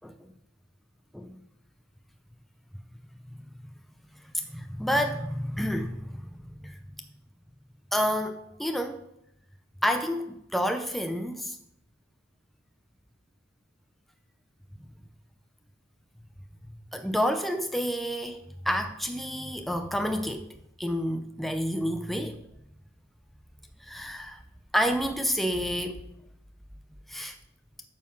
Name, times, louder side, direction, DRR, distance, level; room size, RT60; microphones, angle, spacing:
voice 1, 4.3-6.2 6.6-6.8 7.9-9.0 9.8-11.6 16.7-22.4 23.8-24.4 24.7-26.0 27.1-27.4, equal, ahead, 0.4 m, -29 dB
8.8 x 5.6 x 6.1 m
head